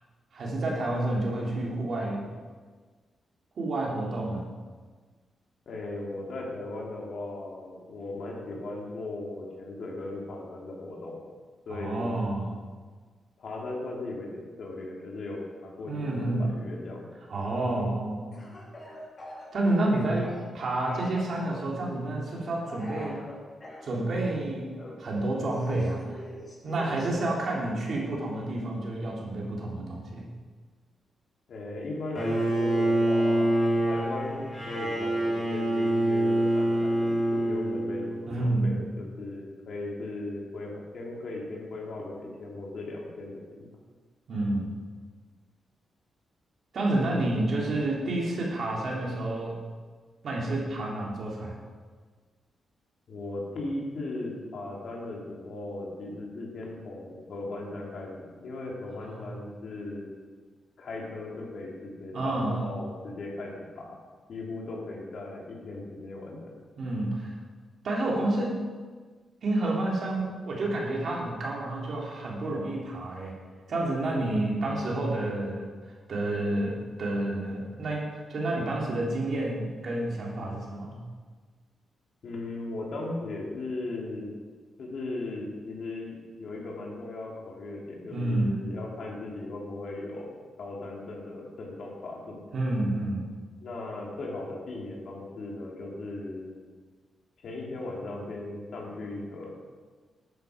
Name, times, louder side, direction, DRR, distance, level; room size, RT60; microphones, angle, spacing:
voice 1, 0.3-2.3 3.6-4.5 11.7-12.6 15.9-16.5 17.3-18.3 19.5-20.3 20.5-23.2 23.8-26.2 26.6-30.3 38.3-38.8 44.3-44.8 46.7-49.6 50.2-51.6 59.1-59.2 62.1-62.7 66.8-67.3 67.8-68.6 69.4-73.3 73.7-75.7 76.1-81.0 88.1-88.5 92.5-93.3, right 2 dB, 55° right, -3 dB, 3.1 m, -29 dB
voice 2, 5.6-11.2 11.6-12.1 13.4-17.0 31.5-43.7 53.1-60.1 60.8-63.9 64.3-66.4 82.2-84.3 84.8-92.4 93.6-96.6 97.4-99.5, left 2 dB, 60° left, -2 dB, 3.2 m, -37 dB
Speech / Cough, 18.3-20.6 20.9-21.7 22.6-23.8 24.8-27.1, left 1 dB, 30° left, 4.2 m, -44 dB
Bowed string instrument, 32.2-38.3, right 1 dB, 10° left, 3.3 m, -26 dB
12.5 x 9.5 x 5.1 m, 1.5 s
wide cardioid pair, 145°, 0 cm